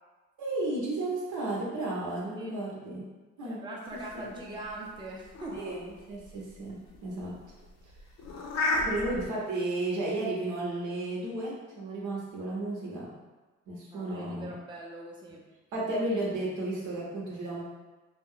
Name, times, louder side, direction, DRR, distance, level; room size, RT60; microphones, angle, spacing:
voice 1, 0.4-3.0 3.4-3.6 3.9-4.2 5.6-7.3 8.8-13.2 13.7-14.6 15.7-17.6, right 2 dB, 80° right, -4 dB, 0.9 m, -33 dB
voice 2, 3.4-5.6 8.5-9.0 13.9-15.4, right 1 dB, 15° right, -2 dB, 0.5 m, -42 dB
sound 1, 4.0-9.3, left 2 dB, 60° left, 0.5 m, -35 dB
2.4 x 2.2 x 3.6 m, 1.2 s
cardioid pair, 90°, 30 cm